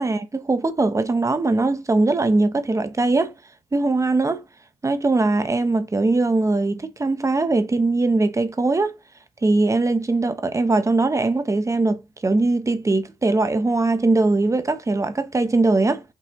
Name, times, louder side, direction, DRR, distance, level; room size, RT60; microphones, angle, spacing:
voice 1, 0.0-3.3 3.7-4.4 4.8-8.9 9.4-16.0, right 2 dB, 25° right, 0.9 m, -21 dB
5.3 x 2.7 x 3.4 m
supercardioid pair, 55°, 12 cm